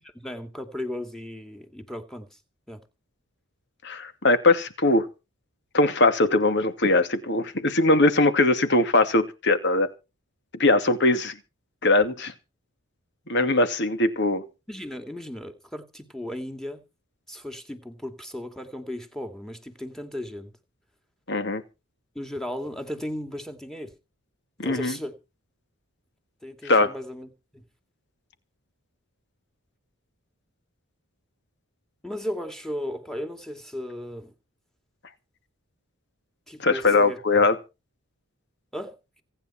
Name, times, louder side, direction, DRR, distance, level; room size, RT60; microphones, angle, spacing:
voice 1, 0.0-2.4 2.7-2.8 14.7-16.8 17.3-20.5 22.1-23.9 24.6-25.2 26.4-27.7 32.0-34.3 36.5-37.5 38.7-39.2, left 1 dB, ahead, 2.4 m, -36 dB
voice 2, 3.8-5.1 5.7-9.9 10.6-11.4 11.8-12.3 13.3-14.4 21.3-21.6 24.6-25.0 26.6-26.9 36.6-37.6, left 2 dB, 50° left, 2.5 m, -21 dB
26.5 x 10.0 x 4.5 m
head